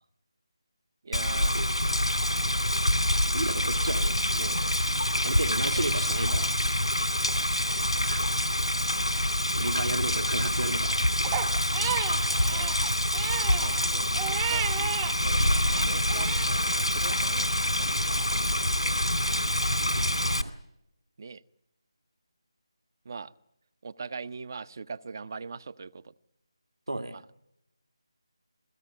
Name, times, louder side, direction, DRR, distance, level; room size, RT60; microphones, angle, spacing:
voice 1, 1.0-1.8 12.5-14.7 15.2-17.5 17.8-18.7 19.3-19.4 21.2-21.4 23.0-23.3 23.8-26.1 27.1-27.2, right 5 dB, 40° right, 17 dB, 1.0 m, -42 dB
Rain, 1.1-20.4, left 1 dB, 90° left, 3.4 m, -26 dB
voice 2, 3.3-4.6 5.2-6.6 8.0-8.3 8.6-8.7 9.6-11.0 26.9-27.3, right 2 dB, 70° right, 8 dB, 2.6 m, -33 dB
Crying sobbing, 11.2-15.1 15.5-16.5, right 10 dB, 15° right, 0.9 m, -34 dB
27.5 x 17.0 x 9.3 m, 0.82 s
figure-of-eight pair, 160°, 3 cm